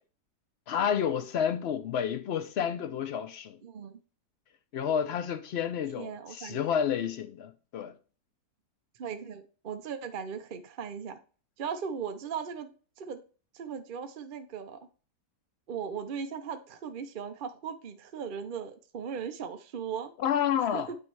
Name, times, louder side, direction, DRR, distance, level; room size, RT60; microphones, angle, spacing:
voice 1, 0.7-3.6 4.7-7.9 20.2-20.9, left 8 dB, 70° left, 0.6 m, -30 dB
voice 2, 3.6-4.0 6.0-6.6 9.0-11.2 11.6-13.2 13.5-14.9 15.7-20.1 20.6-21.0, right 7 dB, 55° right, 0.5 m, -38 dB
9.5 x 3.2 x 4.6 m
omnidirectional pair, 1.8 m